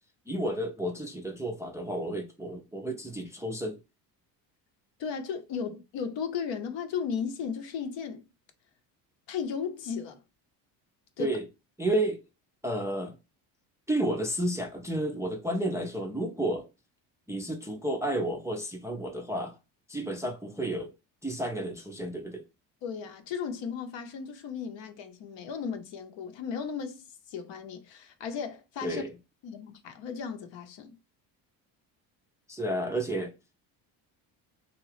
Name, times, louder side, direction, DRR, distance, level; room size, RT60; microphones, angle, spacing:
voice 1, 0.3-3.8 11.2-11.4 11.8-12.2 12.6-13.2 13.9-16.7 17.3-19.6 19.9-20.9 21.2-22.4 28.8-29.1 32.5-33.3, right 1 dB, 5° right, 0.4 m, -31 dB
voice 2, 5.0-8.3 9.3-10.2 11.2-11.4 22.8-27.0 27.3-29.0 29.4-30.9, left 6 dB, 60° left, 0.8 m, -35 dB
2.7 x 2.3 x 3.2 m
supercardioid pair, 70°, 50 cm